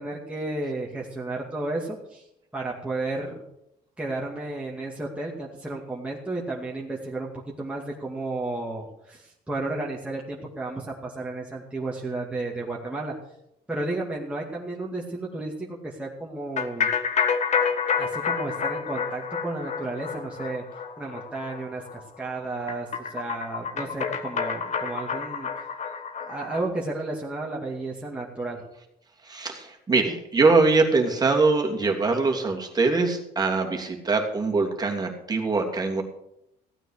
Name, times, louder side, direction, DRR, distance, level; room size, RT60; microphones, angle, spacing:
voice 1, 0.0-2.3 2.5-3.4 4.0-7.3 7.6-13.1 13.7-16.9 18.0-25.5 26.2-28.6, right 2 dB, 5° right, -3 dB, 2.3 m, -33 dB
sound 1, 16.6-26.6, left 6 dB, 45° left, 1.7 m, -29 dB
voice 2, 29.2-36.0, right 3 dB, 25° right, 1 dB, 2.8 m, -23 dB
16.0 x 9.0 x 6.5 m, 0.80 s
cardioid pair, 110°, 17 cm